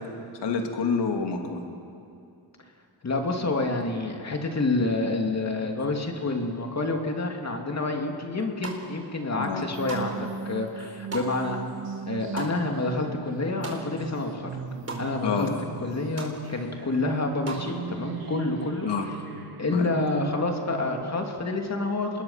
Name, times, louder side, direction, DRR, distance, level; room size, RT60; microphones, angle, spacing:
voice 1, 0.4-1.7 9.4-9.7 15.2-15.6 18.9-19.1 19.7-19.9, left 5 dB, 75° left, 3 dB, 2.6 m, -28 dB
voice 2, 3.0-11.6 12.1-14.5 15.0-15.5 15.8-18.9 19.6-22.2, left 2 dB, 40° left, 2 dB, 2.9 m, -28 dB
sound 1, 8.3-9.1 9.4-14.2 14.4-15.0 15.5-15.6 15.8-16.3 16.7-17.7, right 2 dB, 35° right, 4.4 m, -39 dB
sound 2, 9.7-21.0, right 5 dB, 55° right, 2.0 m, -38 dB
27.5 x 20.5 x 5.9 m, 2.5 s
cardioid pair, 75°, 42 cm